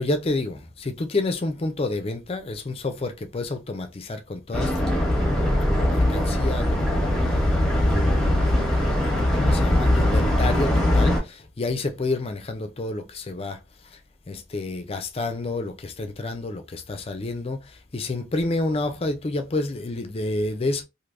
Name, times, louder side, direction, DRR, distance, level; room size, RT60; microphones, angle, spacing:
voice 1, 0.0-7.5 7.8-8.9 9.2-13.6 13.8-14.0 14.3-20.8, left 2 dB, 30° left, 0.4 m, -29 dB
sound 1, 4.5-11.2, left 1 dB, ahead, 0.8 m, -21 dB
3.3 x 2.6 x 2.5 m
head